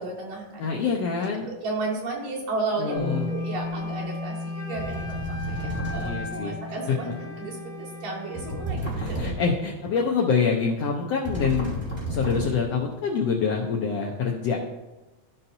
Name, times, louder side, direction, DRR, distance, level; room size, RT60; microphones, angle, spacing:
voice 1, 0.0-7.1 7.4-9.3, right 3 dB, 80° right, -5 dB, 3.7 m, -34 dB
voice 2, 0.6-1.5 2.8-3.4 6.0-6.6 6.9-7.0 8.9-14.6, left 5 dB, 85° left, 0 dB, 1.4 m, -26 dB
Wind instrument woodwind instrument, 2.8-8.7, left 1 dB, 55° left, 1.7 m, -41 dB
Bass guitar, 3.0-9.2, left 3 dB, 55° right, 1.4 m, -35 dB
sound 1, 3.7-3.9 4.7-6.4 8.3-9.7 11.2-12.8, right 1 dB, 5° left, 2.0 m, -32 dB
14.5 x 5.6 x 2.7 m, 1.1 s
omnidirectional pair, 3.8 m